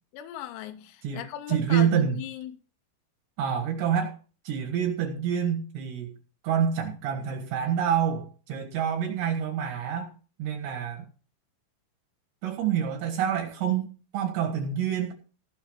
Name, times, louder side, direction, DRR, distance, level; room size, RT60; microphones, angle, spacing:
voice 1, 0.1-2.5, left 12 dB, 90° left, 3.5 m, -38 dB
voice 2, 1.0-2.2 3.4-4.1 4.5-6.1 6.4-10.1 10.4-11.1 12.4-15.1, right 8 dB, 65° right, 3.5 m, -27 dB
15.5 x 5.6 x 6.2 m
omnidirectional pair, 5.9 m